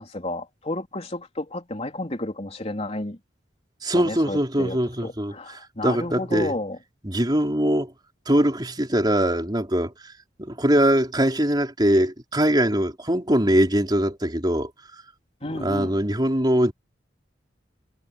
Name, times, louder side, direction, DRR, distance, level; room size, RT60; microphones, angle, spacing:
voice 1, 0.0-3.2 3.9-6.8 15.4-16.0, left 1 dB, 35° left, 3.6 m, -32 dB
voice 2, 3.8-5.3 5.8-6.5 7.0-7.9 8.3-9.9 10.4-14.7 15.6-16.7, right 1 dB, 25° right, 4.5 m, -22 dB
head